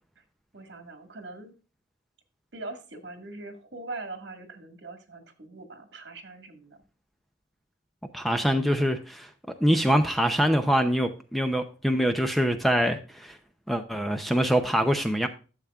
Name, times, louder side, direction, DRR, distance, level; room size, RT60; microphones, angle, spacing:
voice 1, 0.5-1.5 2.5-6.8, right 2 dB, 65° right, 1.8 m, -41 dB
voice 2, 8.1-9.3 9.6-13.4 13.7-15.3, equal, ahead, 0.6 m, -24 dB
12.5 x 7.2 x 2.4 m
head